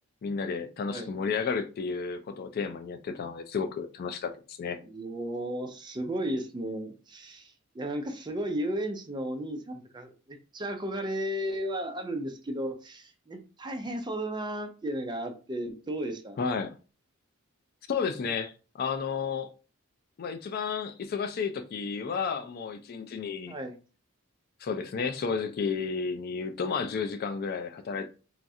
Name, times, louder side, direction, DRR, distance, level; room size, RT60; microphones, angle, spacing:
voice 1, 0.2-4.8 16.4-16.8 17.9-19.5 20.2-23.6 24.6-28.1, left 5 dB, 45° left, 0.3 m, -32 dB
voice 2, 4.8-16.4 23.5-23.8, right 1 dB, 20° right, 0.5 m, -34 dB
3.1 x 2.4 x 2.6 m
head